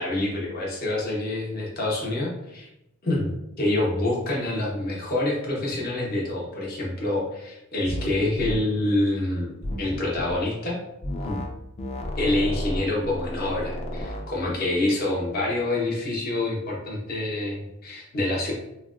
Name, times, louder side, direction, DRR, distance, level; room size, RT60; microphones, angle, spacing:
voice 1, 0.0-2.7 3.0-3.3 3.6-9.5 9.8-10.8 11.2-11.4 12.2-18.5, left 2 dB, 45° left, -4 dB, 0.8 m, -26 dB
sound 1, 7.9-8.1 8.4-8.6 9.6-10.4 11.0-11.5 11.8-14.2, left 1 dB, 30° left, 0.4 m, -31 dB
3.9 x 2.1 x 2.4 m, 0.87 s
head